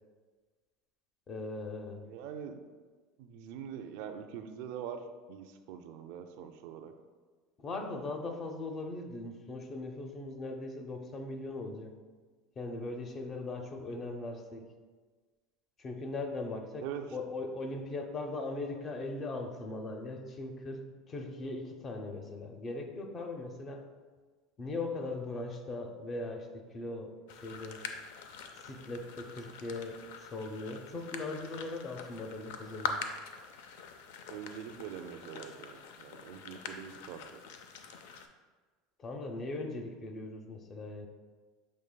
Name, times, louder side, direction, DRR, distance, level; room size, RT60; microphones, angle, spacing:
voice 1, 1.3-2.0 7.6-11.9 12.6-14.7 15.8-16.8 17.1-23.9 24.6-26.5 26.7-27.1 27.4-27.8 28.6-33.0 39.0-41.1, left 2 dB, 30° left, 5 dB, 0.5 m, -39 dB
voice 2, 2.0-2.6 3.2-6.9 16.8-17.2 34.3-37.4, right 8 dB, 70° right, 7 dB, 0.3 m, -43 dB
sound 1, 27.3-38.3, left 5 dB, 80° left, 0.4 m, -44 dB
6.4 x 3.1 x 2.2 m, 1.4 s
supercardioid pair, 120°, 0 cm